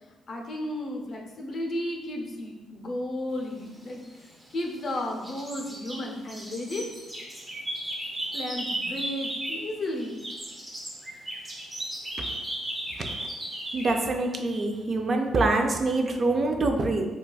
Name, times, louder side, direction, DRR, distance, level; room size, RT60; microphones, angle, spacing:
voice 1, 0.3-4.0 4.5-6.9 8.3-10.3, left 1 dB, 45° left, 1 dB, 0.5 m, -33 dB
sound 1, 4.1-4.9 5.2-9.7 10.0-14.0, right 1 dB, 10° right, 0.6 m, -35 dB
voice 2, 13.7-17.0, right 2 dB, 45° right, 3 dB, 0.4 m, -25 dB
3.8 x 2.3 x 2.2 m, 1.2 s
cardioid pair, 90°, 0 cm